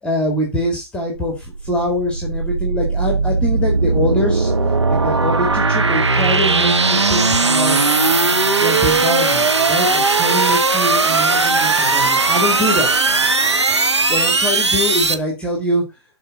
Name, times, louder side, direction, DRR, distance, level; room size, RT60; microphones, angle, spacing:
voice 1, 0.0-4.5 4.9-7.8 8.6-12.9 13.8-15.8, left 1 dB, 10° left, 2 dB, 2.2 m, -23 dB
sound 1, 1.1-15.1, right 3 dB, 75° right, 1.3 m, -17 dB
12.5 x 4.8 x 4.0 m, 0.27 s
figure-of-eight pair, 125°, 15 cm